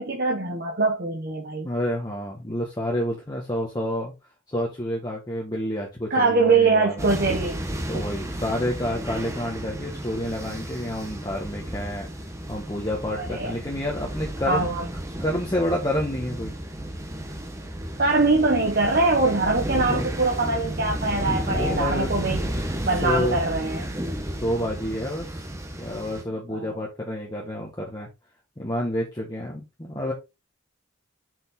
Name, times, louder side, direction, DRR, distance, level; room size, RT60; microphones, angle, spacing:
voice 1, 0.0-1.7 6.1-7.6 7.9-8.0 13.1-13.5 14.5-14.9 18.0-22.4 22.8-23.9 26.5-26.7, right 3 dB, 50° right, 1.4 m, -23 dB
voice 2, 1.6-4.1 4.5-7.3 7.9-12.1 12.5-14.7 15.2-16.6 19.7-20.0 21.5-23.4 24.4-25.5 25.8-28.1 28.6-30.1, left 1 dB, 20° left, 1.5 m, -29 dB
sound 1, 7.0-26.2, right 1 dB, 15° right, 1.2 m, -32 dB
6.2 x 5.2 x 3.9 m
head